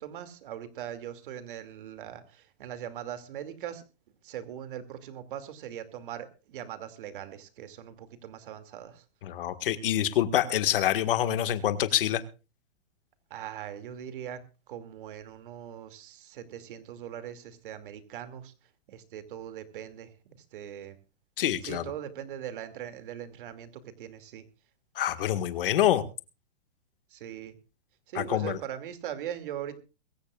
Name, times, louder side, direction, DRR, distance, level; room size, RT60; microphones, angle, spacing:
voice 1, 0.0-3.8 4.2-9.0 13.3-18.5 18.9-21.0 21.6-24.4 27.1-27.5 28.1-29.8, right 10 dB, 50° right, 10 dB, 2.6 m, -40 dB
voice 2, 9.2-12.2 21.4-21.8 25.0-26.1 28.2-28.6, left 11 dB, 50° left, 10 dB, 1.8 m, -26 dB
23.0 x 14.5 x 2.5 m, 0.32 s
hypercardioid pair, 170°, 34 cm